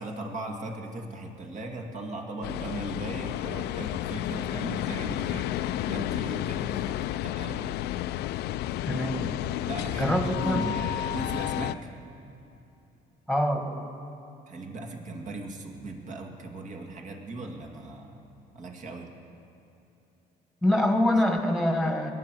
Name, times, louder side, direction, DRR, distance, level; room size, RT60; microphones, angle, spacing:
voice 1, 0.0-7.9 9.7-11.9 14.5-18.2 18.5-19.1, right 2 dB, 45° right, 2 dB, 2.1 m, -38 dB
sound 1, 2.4-11.7, left 13 dB, 75° left, 0.4 m, -31 dB
voice 2, 8.8-9.3 10.0-10.7 13.3-13.9 20.6-22.1, left 1 dB, ahead, 4 dB, 1.8 m, -25 dB
21.5 x 9.9 x 6.2 m, 3.0 s
cardioid pair, 110°, 17 cm